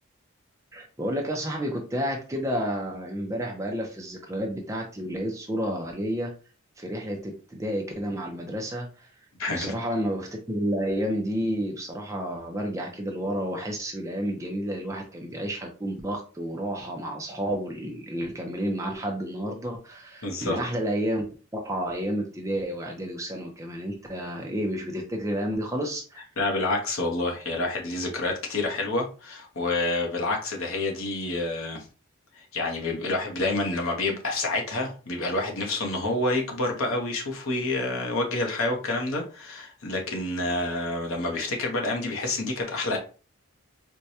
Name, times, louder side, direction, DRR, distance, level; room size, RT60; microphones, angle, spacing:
voice 1, 0.7-6.3 6.8-9.1 9.5-21.3 21.5-26.2, equal, 15° right, 1 dB, 0.5 m, -30 dB
voice 2, 9.4-9.7 20.2-20.6 26.4-31.8 32.3-43.0, left 2 dB, 70° left, 1 dB, 0.9 m, -28 dB
4.5 x 2.2 x 2.7 m, 0.36 s
head